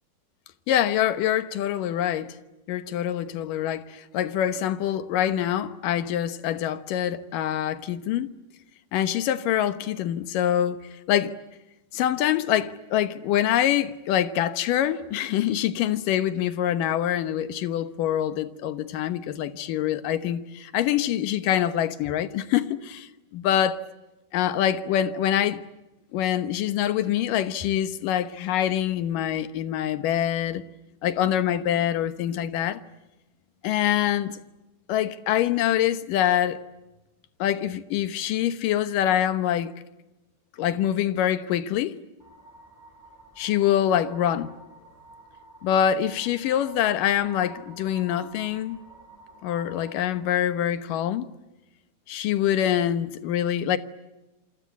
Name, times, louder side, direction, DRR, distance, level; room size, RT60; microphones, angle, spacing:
voice 1, 0.7-2.4 2.7-8.3 8.9-11.3 11.9-23.8 24.3-25.6 26.1-30.6 31.0-32.8 33.6-34.4 34.9-36.6 37.4-39.7 40.6-42.0 43.4-44.5 45.6-48.8 49.4-51.3 52.1-53.8, left 11 dB, 90° left, 2.8 m, -25 dB
sound 1, 42.2-50.2, right 2 dB, 5° left, 6.9 m, -50 dB
28.0 x 25.0 x 8.3 m
omnidirectional pair, 3.7 m